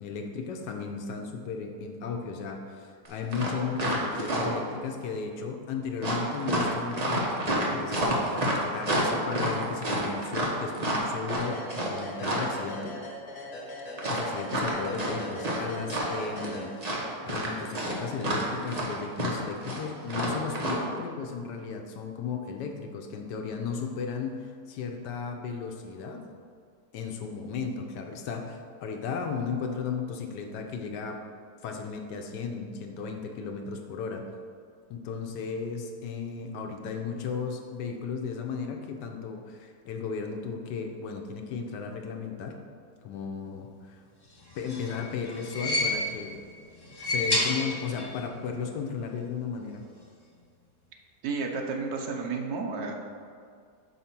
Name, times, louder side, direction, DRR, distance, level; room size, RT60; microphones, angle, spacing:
voice 1, 0.0-8.4 8.7-13.0 14.1-26.2 26.9-31.2 31.6-34.3 34.9-42.6 43.0-44.0 44.5-46.4 47.0-49.8, left 5 dB, 80° left, 3 dB, 1.3 m, -35 dB
sound 1, 3.0-3.1 3.3-4.7 6.0-12.5 14.0-15.6 15.8-16.6 16.8-20.7, right 1 dB, 30° right, 0.8 m, -29 dB
sound 2, 11.4-17.2, left 1 dB, 65° left, 1.8 m, -40 dB
sound 3, 44.4-46.3 46.8-48.2 48.5-48.6 49.7-49.8, left 1 dB, 40° left, 0.3 m, -30 dB
voice 2, 51.2-52.9, right 4 dB, 70° right, 2 dB, 1.1 m, -31 dB
5.4 x 4.2 x 5.8 m, 2.1 s
omnidirectional pair, 1.8 m